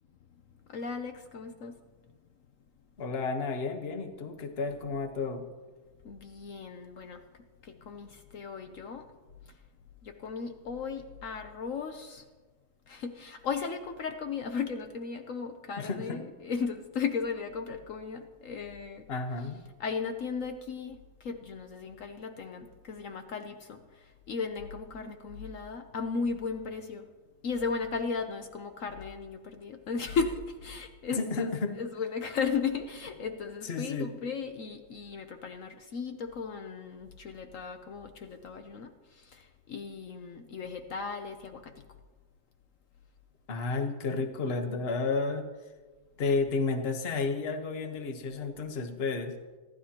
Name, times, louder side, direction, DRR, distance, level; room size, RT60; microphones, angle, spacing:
voice 1, 0.7-1.8 6.0-7.2 7.6-9.0 10.0-12.2 12.9-19.1 19.8-23.8 24.3-27.1 27.4-41.7, left 5 dB, 70° left, 6 dB, 0.7 m, -36 dB
voice 2, 3.0-5.4 15.8-16.2 19.1-19.6 31.1-31.8 33.6-34.1 43.5-45.5 46.2-49.3, left 4 dB, 35° left, 6 dB, 1.1 m, -32 dB
26.0 x 12.0 x 2.9 m, 1.3 s
omnidirectional pair, 2.3 m